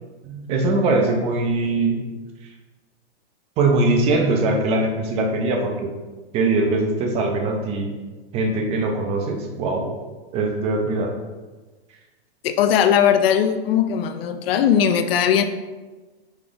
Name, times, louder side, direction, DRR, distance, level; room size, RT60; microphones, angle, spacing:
voice 1, 0.2-2.0 3.6-5.9 6.3-7.9 8.3-9.9 10.3-11.1, right 2 dB, 20° right, 3 dB, 0.4 m, -21 dB
voice 2, 12.4-15.4, left 8 dB, 60° left, 9 dB, 0.5 m, -19 dB
5.1 x 3.5 x 2.5 m, 1.2 s
hypercardioid pair, 145°, 33 cm